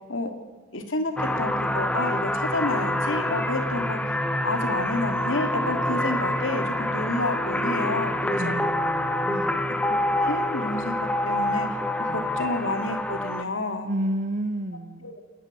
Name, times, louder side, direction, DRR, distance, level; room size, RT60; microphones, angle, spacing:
voice 1, 0.7-4.2 4.4-8.6 9.3-9.5 9.9-11.7 12.1-13.9 15.0-15.2, left 2 dB, 75° left, 6 dB, 2.5 m, -30 dB
sound 1, 1.2-13.4, left 1 dB, 5° left, 0.9 m, -26 dB
sound 2, 5.4-10.4, equal, 35° left, 7.7 m, -41 dB
voice 2, 8.4-9.8 12.1-12.5 13.8-15.1, right 1 dB, 40° right, 9 dB, 0.7 m, -31 dB
28.5 x 10.5 x 9.6 m, 1.5 s
head